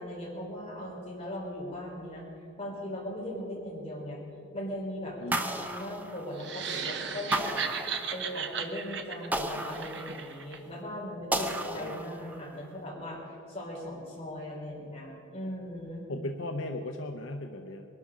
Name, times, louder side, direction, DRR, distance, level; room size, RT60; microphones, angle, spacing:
voice 1, 0.0-2.2 2.6-4.2 4.5-7.6 8.1-13.2 13.5-16.1, left 1 dB, 30° left, -5 dB, 4.5 m, -39 dB
sound 1, 5.3-6.7 7.3-8.5 9.3-10.6 11.3-12.5, right 1 dB, 10° right, 0.6 m, -34 dB
sound 2, 6.4-10.6, right 6 dB, 60° right, 1.0 m, -36 dB
voice 2, 11.3-12.0 16.1-17.9, left 1 dB, 70° left, 4 dB, 0.8 m, -37 dB
21.0 x 12.0 x 5.0 m, 2.6 s
head